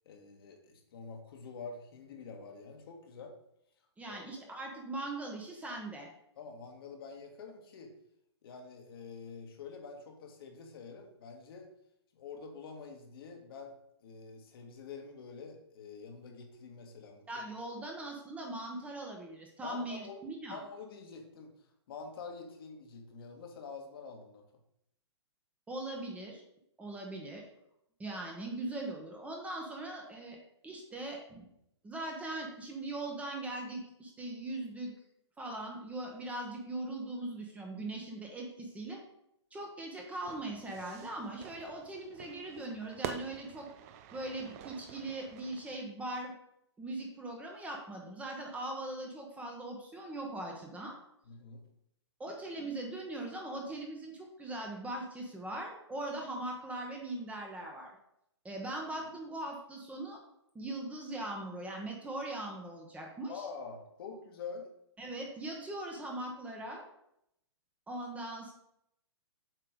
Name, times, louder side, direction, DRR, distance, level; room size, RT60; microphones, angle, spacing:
voice 1, 0.0-3.3 4.0-4.2 6.4-7.9 8.4-11.7 12.1-13.7 14.0-17.4 19.6-20.2 20.5-21.5 21.9-24.4 51.3-51.6 63.3-64.7, left 5 dB, 55° left, 3 dB, 1.4 m, -46 dB
voice 2, 4.0-6.1 17.3-20.6 25.7-26.4 26.8-27.4 28.0-30.4 30.6-31.5 31.8-34.9 35.4-39.0 39.5-43.7 44.1-46.3 46.8-50.9 52.2-57.9 58.4-60.2 60.5-63.5 65.0-66.9 67.9-68.5, right 2 dB, 10° right, 1 dB, 1.0 m, -40 dB
Fire / Fireworks, 40.3-45.8, right 10 dB, 30° right, 0.4 m, -47 dB
7.7 x 3.3 x 5.0 m, 0.77 s
hypercardioid pair, 130°, 15 cm